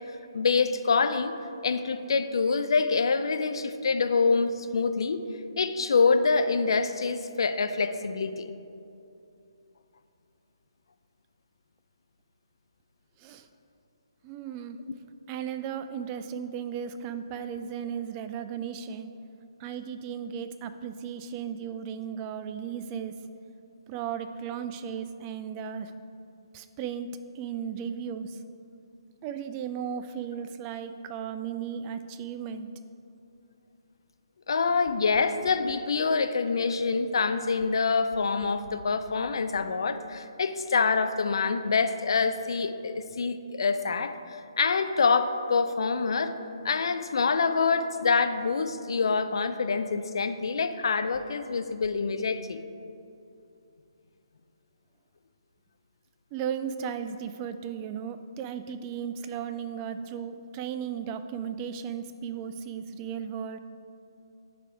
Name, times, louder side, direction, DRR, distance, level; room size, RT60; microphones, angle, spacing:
voice 1, 0.3-1.4 1.6-5.2 5.6-8.5 34.5-44.2 44.6-46.3 46.6-52.6, left 4 dB, 65° left, 9 dB, 0.4 m, -26 dB
voice 2, 14.2-14.8 15.3-19.1 19.6-23.2 23.9-25.9 26.5-28.4 29.2-32.7 56.3-63.6, right 8 dB, 25° right, 9 dB, 0.3 m, -35 dB
10.0 x 3.4 x 4.8 m, 2.7 s
figure-of-eight pair, 140°, 3 cm